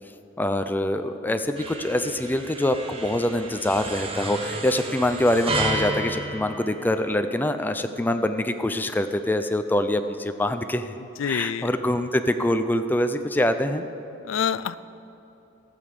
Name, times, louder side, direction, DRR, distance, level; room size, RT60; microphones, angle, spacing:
voice 1, 0.4-10.9 11.2-13.8, left 1 dB, 10° left, 8 dB, 0.4 m, -24 dB
sound 1, 1.6-7.4, right 2 dB, 30° right, 1.1 m, -32 dB
voice 2, 11.2-11.7 14.3-14.8, left 8 dB, 80° left, 15 dB, 0.4 m, -26 dB
16.0 x 7.0 x 6.6 m, 2.8 s
head